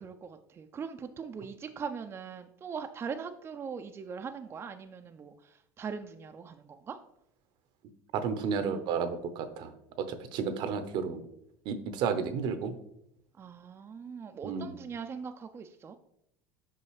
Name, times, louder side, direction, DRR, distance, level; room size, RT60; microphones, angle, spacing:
voice 1, 0.0-7.0 13.4-16.0, right 6 dB, 25° right, 7 dB, 0.4 m, -41 dB
voice 2, 8.1-11.2 11.6-12.8 14.4-14.8, right 6 dB, 60° right, 10 dB, 0.7 m, -32 dB
5.8 x 5.4 x 3.1 m, 0.77 s
hypercardioid pair, 90°, 9 cm